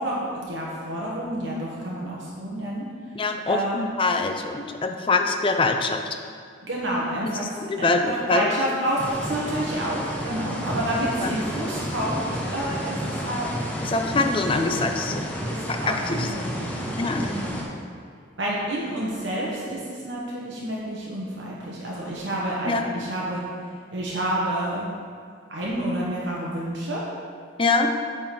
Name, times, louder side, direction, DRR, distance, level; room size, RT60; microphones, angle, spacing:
voice 1, 0.0-2.8 3.5-3.9 6.6-7.5 7.8-13.5 14.1-14.2 14.6-14.7 15.4-17.6 18.4-23.4 23.9-24.9 25.5-27.0, right 1 dB, 70° right, -5 dB, 1.2 m, -29 dB
voice 2, 3.1-6.0 7.2-8.8 11.2-11.3 13.8-15.2 15.7-16.3 17.0-17.6 22.6-22.9 27.6-27.9, left 3 dB, 25° left, 5 dB, 0.5 m, -24 dB
sound 1, 9.0-17.6, equal, 10° left, 0.9 m, -31 dB
8.9 x 3.9 x 5.9 m, 2.1 s
head